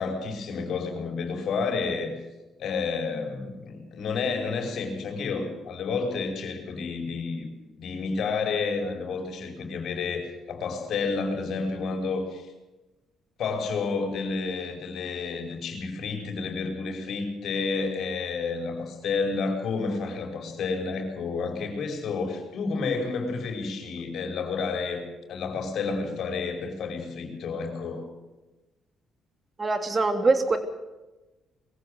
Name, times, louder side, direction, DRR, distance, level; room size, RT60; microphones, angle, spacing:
voice 1, 0.0-2.2 2.6-7.5 7.8-12.5 13.4-28.0, left 4 dB, 70° left, 4 dB, 5.2 m, -30 dB
voice 2, 29.6-30.6, right 3 dB, 35° right, 8 dB, 3.2 m, -23 dB
22.0 x 15.5 x 8.0 m, 1.1 s
supercardioid pair, 70°, 0 cm